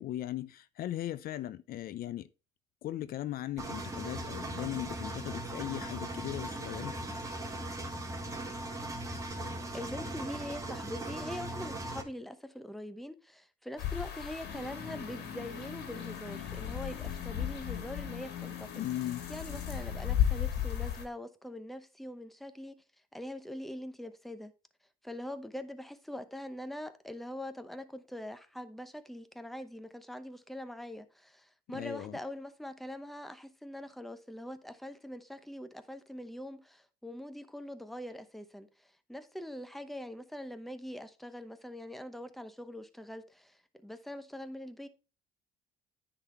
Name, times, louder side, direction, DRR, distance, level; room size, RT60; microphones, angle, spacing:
voice 1, 0.0-2.3 2.8-6.9 18.8-19.2 31.7-32.2, left 13 dB, 60° left, 0.5 m, -38 dB
Engine, 3.6-12.0, right 1 dB, 20° right, 1.6 m, -39 dB
voice 2, 9.7-18.8 19.3-22.8 23.1-24.5 25.0-44.9, left 1 dB, ahead, 0.8 m, -43 dB
sound 1, 13.8-21.0, left 10 dB, 75° left, 2.2 m, -35 dB
sound 2, 14.4-20.2, left 10 dB, 40° left, 1.7 m, -44 dB
9.8 x 4.1 x 4.3 m
cardioid pair, 110°, 17 cm